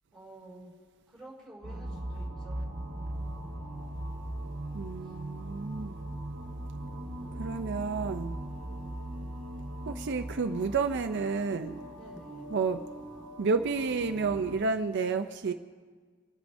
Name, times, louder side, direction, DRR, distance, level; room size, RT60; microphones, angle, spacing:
voice 1, 0.1-0.7 1.1-2.6 12.0-12.6, right 1 dB, 5° left, -5 dB, 5.2 m, -50 dB
sound 1, 1.6-14.6, right 1 dB, 85° right, 1.2 m, -39 dB
voice 2, 4.7-6.0 7.4-8.4 9.9-11.8 12.5-12.8 13.4-15.5, right 4 dB, 55° right, 7 dB, 0.5 m, -30 dB
28.0 x 11.5 x 2.6 m, 1.5 s
head